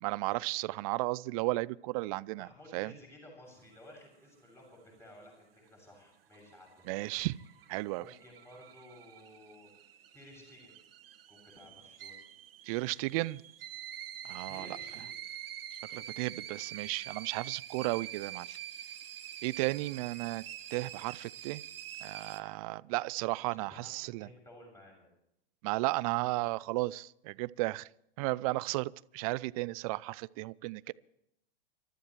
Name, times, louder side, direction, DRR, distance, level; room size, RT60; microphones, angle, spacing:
voice 1, 0.0-2.9 6.9-7.3 7.7-8.0 12.7-13.4 14.2-14.8 15.9-18.6 19.4-20.4 20.7-21.6 22.0-24.3 25.6-27.9 28.2-30.9, right 21 dB, 35° right, 0.5 m, -34 dB
voice 2, 2.4-7.1 7.9-9.7 10.1-10.7 11.3-12.2 14.5-15.2 23.5-23.9 24.2-25.1, left 1 dB, 10° left, 6.9 m, -55 dB
sound 1, 6.1-22.4, right 10 dB, 65° right, 1.8 m, -46 dB
28.5 x 13.5 x 3.2 m
hypercardioid pair, 110°, 31 cm